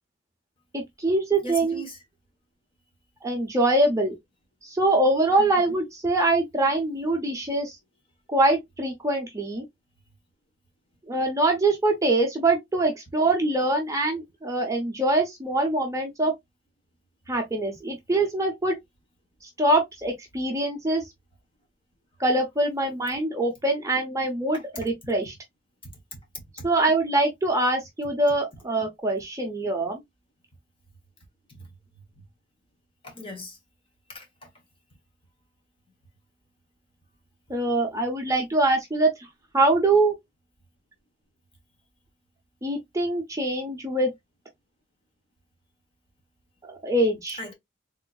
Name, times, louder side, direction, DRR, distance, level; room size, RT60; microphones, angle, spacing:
voice 1, 0.7-1.8 3.2-4.2 4.6-7.8 8.3-9.6 11.1-16.3 17.3-18.8 19.6-21.0 22.2-25.3 26.6-30.0 37.5-39.1 39.5-40.1 42.6-44.1 46.7-47.4, right 2 dB, 15° right, 0.9 m, -24 dB
voice 2, 1.4-2.0 5.4-5.7 24.5-24.9 26.1-26.2 26.6-26.7 31.5-31.7 33.0-33.6 34.1-34.5 47.4-47.5, left 1 dB, 30° left, 1.2 m, -39 dB
3.6 x 2.9 x 2.3 m
head